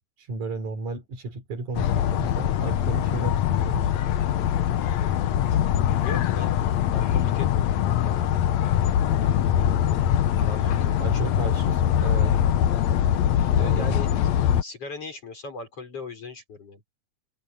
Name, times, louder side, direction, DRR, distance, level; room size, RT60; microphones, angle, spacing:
voice 1, 0.0-3.9 11.0-12.4 13.6-14.0, right 3 dB, 80° right, 5.8 m, -33 dB
sound 1, 1.7-14.6, left 10 dB, 70° left, 2.1 m, -23 dB
voice 2, 6.0-6.6 6.9-8.3 10.4-11.2 13.5-14.1 14.6-16.8, left 3 dB, 50° left, 6.5 m, -39 dB
omnidirectional pair, 3.3 m